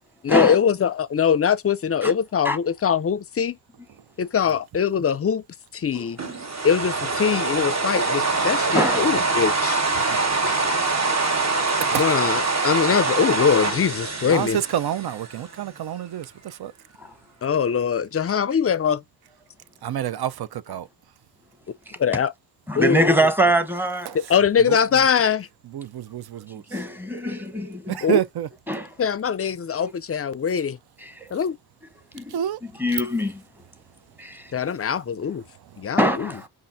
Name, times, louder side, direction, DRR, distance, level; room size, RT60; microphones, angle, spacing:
voice 1, 0.2-3.6 4.2-5.4 5.7-6.2 6.6-9.8 12.0-14.6 17.4-19.0 22.0-22.3 22.8-23.3 24.1-25.5 28.0-28.2 29.0-30.8 31.3-31.6 34.5-35.4 35.8-36.3, left 7 dB, 35° left, 0.4 m, -22 dB
voice 2, 5.9-6.4 8.7-9.1 10.1-10.7 17.0-17.1 21.9-22.2 22.7-24.2 26.7-28.0 28.7-28.9 29.8-29.9 31.0-31.3 32.1-33.4 34.2-34.5 36.0-36.5, equal, 5° right, 1.0 m, -24 dB
sound 1, 6.2-15.4, right 3 dB, 40° right, 1.2 m, -24 dB
voice 3, 14.2-16.7 19.8-20.9 24.1-24.2 24.7-24.8 25.7-26.6 28.1-28.5 32.3-32.6, right 11 dB, 65° right, 0.5 m, -28 dB
5.4 x 2.5 x 2.5 m
cardioid pair, 55°, 41 cm